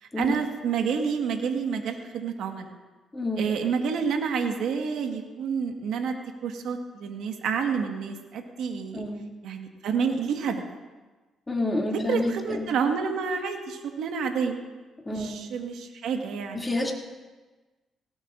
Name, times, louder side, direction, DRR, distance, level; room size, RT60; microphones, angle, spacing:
voice 1, 0.0-2.7 3.4-6.1 6.4-9.0 9.4-10.6 11.9-14.6 15.1-16.7, right 6 dB, 80° right, 3 dB, 1.5 m, -29 dB
voice 2, 3.1-3.5 8.9-9.2 11.5-12.7 15.0-15.4 16.5-16.9, left 2 dB, 15° left, -1 dB, 2.5 m, -28 dB
18.5 x 17.5 x 2.5 m, 1.3 s
cardioid pair, 90°, 0 cm